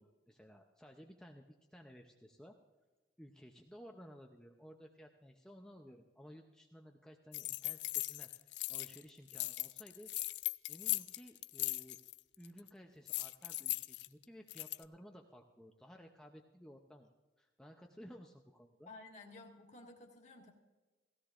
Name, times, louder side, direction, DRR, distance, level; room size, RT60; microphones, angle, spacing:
voice 1, 0.0-2.6 3.2-8.3 8.7-10.1 10.7-12.0 12.4-17.1 17.4-18.9, equal, 5° left, 2 dB, 0.6 m, -56 dB
sound 1, 7.3-9.0 9.3-12.2 12.4-12.7 13.1-14.8, left 18 dB, 65° left, 0.3 m, -39 dB
voice 2, 18.9-20.5, left 2 dB, 35° left, 1 dB, 1.8 m, -54 dB
18.0 x 16.5 x 2.5 m, 1.2 s
head